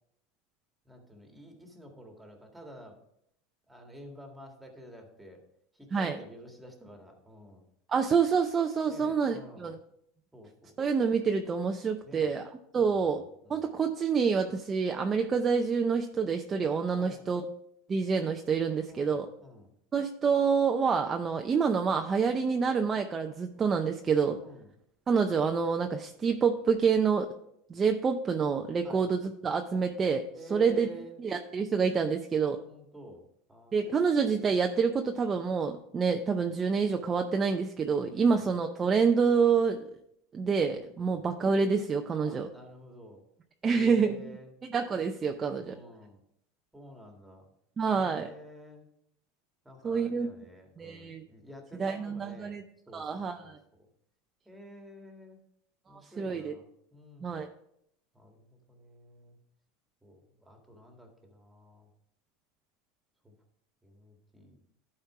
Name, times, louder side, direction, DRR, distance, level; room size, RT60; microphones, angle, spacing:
voice 1, 0.8-3.0 3.7-5.4 5.7-7.6 8.8-9.7 10.3-10.8 12.0-12.3 12.7-13.1 13.4-13.7 17.0-17.3 18.9-19.7 24.3-24.7 28.8-29.1 30.4-31.2 32.4-33.2 33.5-34.2 36.1-36.3 38.0-38.3 41.0-41.3 42.2-43.2 43.7-44.5 45.6-46.2 46.7-47.5 47.8-48.9 49.6-52.6 52.9-53.6 54.4-55.4 55.9-57.4 58.1-59.4 60.0-61.9 63.2-63.3 63.8-64.6, equal, 5° right, 2 dB, 1.7 m, -50 dB
voice 2, 7.9-9.8 10.8-13.2 13.5-17.5 17.9-19.3 19.9-24.4 25.1-27.3 27.7-30.2 30.5-30.9 31.2-32.6 33.7-39.8 40.3-42.5 43.6-44.4 44.7-45.8 47.8-48.3 49.8-50.3 50.8-51.2 51.8-52.6 52.9-53.6 55.9-56.5 57.2-57.5, right 5 dB, 25° right, 5 dB, 0.5 m, -27 dB
11.5 x 4.4 x 4.8 m, 0.75 s
supercardioid pair, 130°, 0 cm